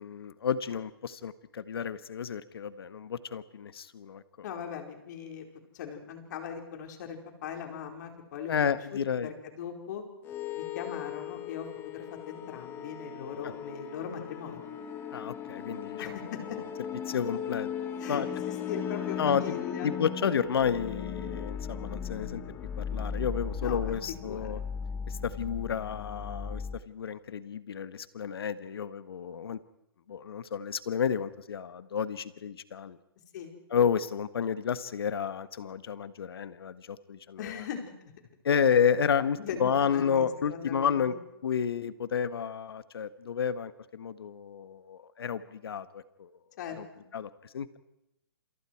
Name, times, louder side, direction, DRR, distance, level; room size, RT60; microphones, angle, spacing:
voice 1, 0.0-4.2 8.5-9.3 13.4-13.5 15.1-16.0 17.1-17.7 18.1-18.3 19.2-19.6 19.8-22.4 22.8-24.6 25.1-29.6 30.1-33.0 33.7-37.4 38.4-41.1 41.4-46.3 47.1-47.8, left 7 dB, 70° left, 13 dB, 1.5 m, -31 dB
voice 2, 4.4-5.5 5.7-10.0 10.6-14.7 16.0-16.6 18.0-19.9 23.6-23.9 24.3-24.6 33.3-33.5 37.4-37.9 39.4-41.2 46.6-47.1, left 7 dB, 50° left, 3 dB, 4.7 m, -40 dB
sound 1, 10.2-26.8, left 7 dB, 15° left, 1.4 m, -37 dB
27.5 x 27.5 x 4.7 m, 0.85 s
hypercardioid pair, 150°, 13 cm